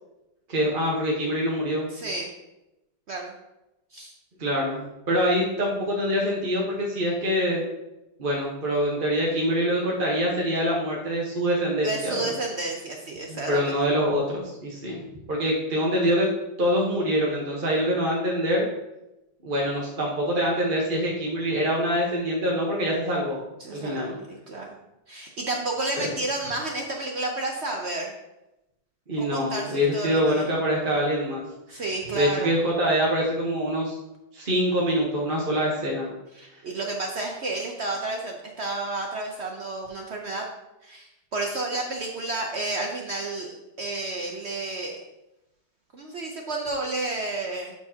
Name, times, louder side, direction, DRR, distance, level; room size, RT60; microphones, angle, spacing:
voice 1, 0.5-1.9 4.4-7.6 8.2-12.3 13.3-15.0 15.3-16.3 16.6-18.7 19.4-23.4 23.7-24.2 26.0-26.1 29.1-31.4 31.7-31.8 32.1-34.0 34.3-36.1, equal, 35° right, -3 dB, 1.0 m, -25 dB
voice 2, 1.9-2.3 3.1-3.3 3.9-4.1 11.8-13.7 23.6-24.8 25.1-28.1 29.2-30.5 31.7-32.5 36.4-40.5 40.8-45.0 45.9-47.7, right 2 dB, 75° right, 1 dB, 0.6 m, -31 dB
12.0 x 4.7 x 2.8 m, 0.94 s
omnidirectional pair, 2.1 m